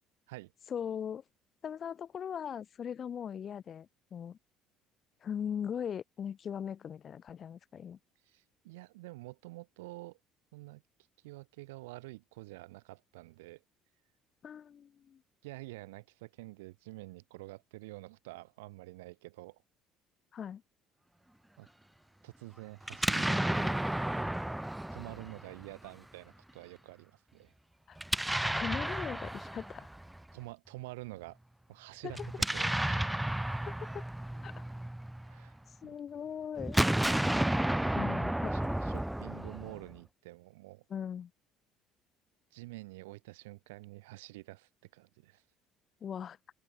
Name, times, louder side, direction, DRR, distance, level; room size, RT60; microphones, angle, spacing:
voice 1, 0.7-1.2 1.6-4.4 5.2-8.0 14.4-15.2 20.3-20.6 27.9-28.0 28.3-29.9 32.0-32.1 33.6-34.0 34.4-34.5 35.8-36.8 37.9-38.5 40.9-41.3 46.0-46.4, left 8 dB, 45° left, 1.6 m, -39 dB
voice 2, 8.2-10.2 10.5-10.8 11.2-13.6 15.4-19.6 21.6-21.7 22.2-23.8 24.9-27.5 30.3-31.4 31.7-33.7 35.3-36.0 38.5-40.8 42.5-45.4, right 21 dB, 75° right, 1.9 m, -48 dB
Explosion, 22.8-25.9 28.0-30.2 32.1-35.5 36.6-40.0, right 1 dB, 5° right, 1.4 m, -32 dB
hypercardioid pair, 60°, 0 cm